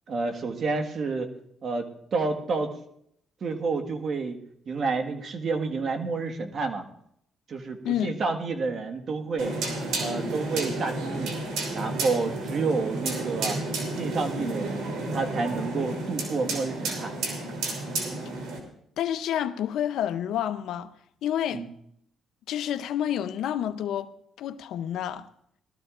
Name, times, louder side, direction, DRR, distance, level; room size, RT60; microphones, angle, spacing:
voice 1, 0.1-1.3 1.6-2.8 3.4-4.4 4.7-6.8 7.5-9.5 10.0-11.3 11.7-13.6 13.9-14.8 15.1-17.1 21.5-21.7, right 4 dB, 55° right, 1.6 m, -29 dB
sound 1, 9.4-18.6, right 2 dB, 85° right, 3.1 m, -31 dB
voice 2, 19.0-20.9 21.2-21.6 22.5-24.1 24.4-25.3, left 10 dB, 80° left, 0.7 m, -29 dB
20.5 x 13.0 x 2.5 m
cardioid pair, 90°, 0 cm